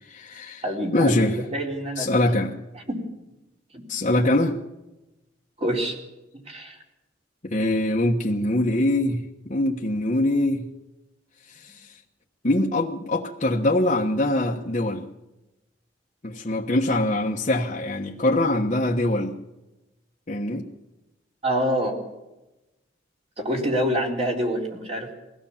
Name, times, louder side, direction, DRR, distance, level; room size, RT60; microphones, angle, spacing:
voice 1, 0.0-0.6 0.9-1.4 2.0-2.6 3.9-4.6 7.4-9.2 9.5-10.6 11.5-11.9 12.4-15.1 16.2-19.4 20.3-20.7, left 1 dB, 40° left, -2 dB, 1.3 m, -23 dB
voice 2, 0.6-1.2 1.5-2.1 2.7-3.0 3.7-3.8 5.6-6.0 6.5-6.8 21.4-22.0 23.4-25.1, equal, 35° right, 0 dB, 4.0 m, -26 dB
22.5 x 16.0 x 7.3 m, 1.0 s
head